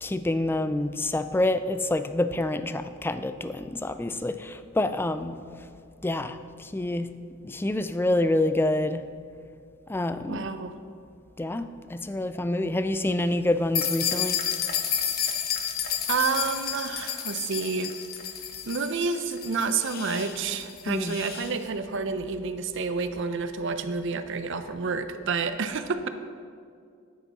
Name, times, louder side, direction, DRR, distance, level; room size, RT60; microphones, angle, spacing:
voice 1, 0.0-5.4 6.0-7.1 7.4-9.0 9.9-10.5 11.4-14.4 20.9-21.2, left 1 dB, 10° left, 11 dB, 0.3 m, -27 dB
voice 2, 10.3-10.7 16.1-17.9 18.7-26.1, right 4 dB, 60° right, 9 dB, 0.6 m, -29 dB
sound 1, 13.7-21.5, left 8 dB, 50° left, 0.9 m, -31 dB
10.0 x 8.5 x 4.1 m, 2.3 s
head